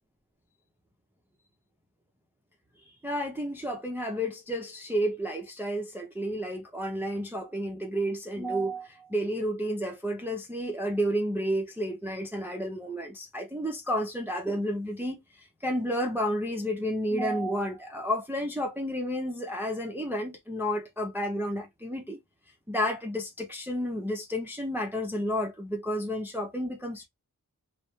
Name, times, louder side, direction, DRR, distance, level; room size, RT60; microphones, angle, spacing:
voice 1, 3.0-22.2 22.7-27.1, equal, 5° right, 0.5 m, -31 dB
2.1 x 2.1 x 2.9 m
wide cardioid pair, 65°, 39 cm